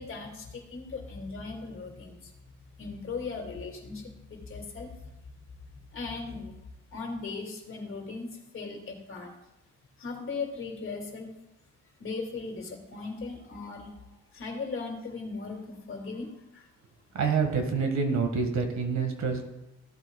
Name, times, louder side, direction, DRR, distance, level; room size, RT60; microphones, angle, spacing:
voice 1, 0.0-2.3 2.8-4.9 5.9-6.6 6.9-9.3 10.0-11.3 12.0-16.7, left 4 dB, 45° left, 2 dB, 2.3 m, -38 dB
voice 2, 17.1-19.5, right 5 dB, 65° right, 5 dB, 1.8 m, -27 dB
15.0 x 8.0 x 2.3 m, 0.94 s
cardioid pair, 90°, 30 cm